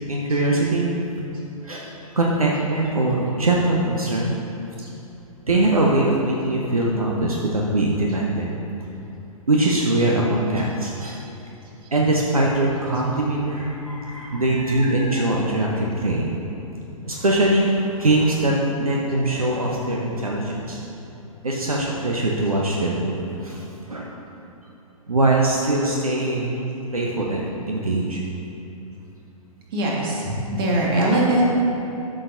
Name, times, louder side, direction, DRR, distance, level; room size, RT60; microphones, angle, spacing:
voice 1, 0.1-0.9 1.6-1.9 2.1-4.4 5.5-8.5 9.5-11.2 11.9-16.3 17.0-20.8 21.4-24.1 25.1-26.6 26.9-28.2, right 2 dB, 75° right, -2 dB, 0.9 m, -22 dB
voice 2, 29.7-31.4, right 1 dB, 40° right, -3 dB, 1.7 m, -22 dB
12.5 x 6.4 x 2.7 m, 2.9 s
figure-of-eight pair, 115°, 19 cm